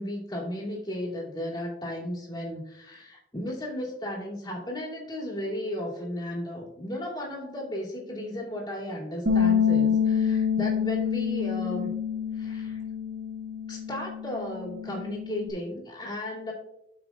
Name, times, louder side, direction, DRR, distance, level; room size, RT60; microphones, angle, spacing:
voice 1, 0.0-11.9 12.3-12.8 13.7-16.5, left 1 dB, 25° left, -4 dB, 2.7 m, -35 dB
Bass guitar, 9.3-15.5, left 7 dB, 75° right, 1.5 m, -27 dB
13.0 x 6.0 x 2.4 m, 0.84 s
head